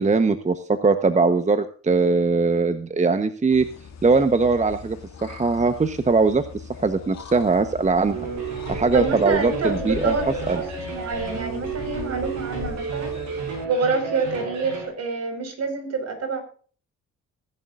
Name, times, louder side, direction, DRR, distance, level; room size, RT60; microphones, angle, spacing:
voice 1, 0.0-3.7 4.0-8.2 8.7-10.1 10.5-10.6, right 4 dB, 25° right, 9 dB, 1.1 m, -21 dB
sound 1, 3.5-13.7, left 6 dB, 60° left, 2.1 m, -39 dB
sound 2, 8.1-14.9, right 5 dB, 75° right, 7.5 m, -32 dB
voice 2, 8.9-13.1 13.6-16.4, right 4 dB, 60° right, 6 dB, 5.0 m, -27 dB
21.0 x 11.0 x 2.6 m, 0.42 s
cardioid pair, 90°, 30 cm